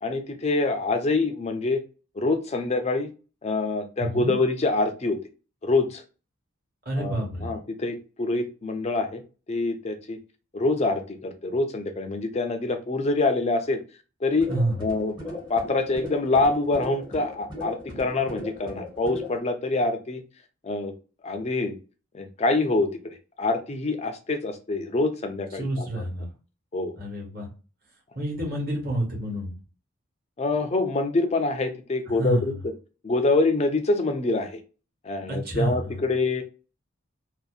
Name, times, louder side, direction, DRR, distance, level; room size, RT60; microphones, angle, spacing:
voice 1, 0.0-1.8 2.2-3.1 3.4-5.2 5.6-6.0 7.0-9.2 9.5-10.2 10.5-13.8 14.2-14.5 14.8-20.2 20.6-20.9 21.2-21.8 22.1-26.0 26.7-26.9 30.4-32.5 33.0-34.6 35.0-36.4, left 3 dB, 30° left, 7 dB, 0.4 m, -25 dB
voice 2, 4.0-4.4 6.8-7.5 14.5-14.7 25.5-26.3 27.0-27.5 28.1-29.5 32.2-32.4 35.3-35.9, right 1 dB, 45° right, -2 dB, 1.1 m, -28 dB
sound 1, 14.3-19.4, left 2 dB, 20° right, 0.8 m, -38 dB
2.6 x 2.1 x 2.3 m, 0.34 s
head